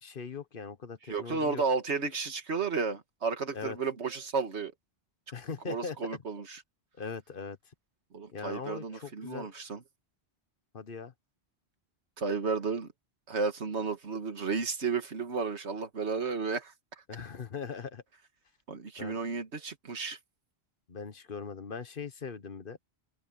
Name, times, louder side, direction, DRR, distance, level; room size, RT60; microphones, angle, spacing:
voice 1, 0.0-1.6 3.5-3.8 5.3-6.0 7.0-7.7 8.3-9.5 10.7-11.1 17.1-18.0 19.0-19.2 20.9-22.8, left 5 dB, 55° left, 1.3 m, -40 dB
voice 2, 1.1-4.7 5.7-6.6 8.1-9.8 12.2-12.9 13.3-16.7 18.7-20.2, right 4 dB, 90° right, 2.0 m, -33 dB
open air
omnidirectional pair, 1.1 m